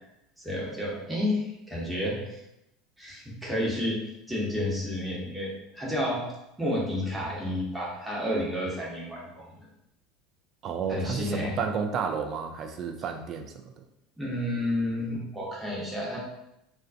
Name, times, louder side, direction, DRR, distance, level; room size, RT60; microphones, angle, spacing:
voice 1, 0.4-2.4 3.0-9.5 10.9-11.6 14.2-16.2, left 1 dB, 10° right, -5 dB, 0.9 m, -31 dB
voice 2, 10.6-13.8, right 6 dB, 45° right, 6 dB, 0.3 m, -32 dB
2.2 x 2.2 x 2.5 m, 0.84 s
figure-of-eight pair, 75°, 0 cm